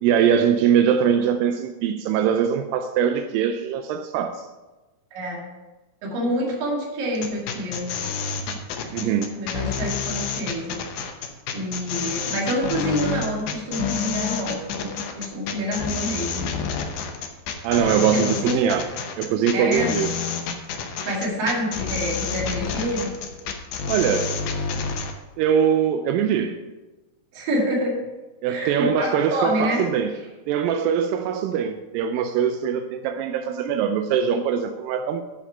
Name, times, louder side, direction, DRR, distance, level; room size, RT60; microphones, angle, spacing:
voice 1, 0.0-4.5 8.9-9.3 17.6-18.9 19.2-20.2 23.9-24.4 25.4-26.6 28.4-30.1 30.5-35.2, right 8 dB, 85° right, 7 dB, 2.0 m, -22 dB
voice 2, 5.1-5.4 6.0-7.9 8.4-8.6 9.0-10.8 11.5-16.5 18.1-18.7 19.5-20.0 21.1-23.1 27.3-28.0 28.5-29.8, equal, 65° right, -3 dB, 3.7 m, -27 dB
sound 1, 7.1-25.1, left 6 dB, 70° left, 2.0 m, -29 dB
11.0 x 5.0 x 5.6 m, 1.1 s
omnidirectional pair, 4.5 m